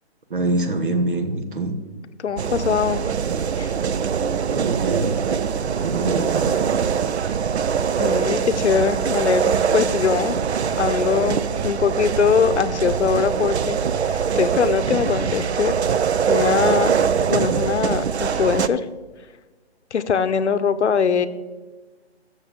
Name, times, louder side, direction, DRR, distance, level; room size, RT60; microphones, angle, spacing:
voice 1, 0.3-1.8 4.5-5.2 5.7-6.5, right 2 dB, 50° right, 7 dB, 1.1 m, -24 dB
voice 2, 2.2-3.0 3.6-3.7 7.3-7.4 8.0-10.4 10.8-15.8 16.3-16.9 17.3-18.8 19.9-21.3, left 6 dB, 85° left, 12 dB, 0.8 m, -22 dB
sound 1, 2.4-18.7, right 7 dB, 75° right, 0.6 m, -23 dB
14.5 x 6.6 x 3.7 m, 1.3 s
hypercardioid pair, 180°, 33 cm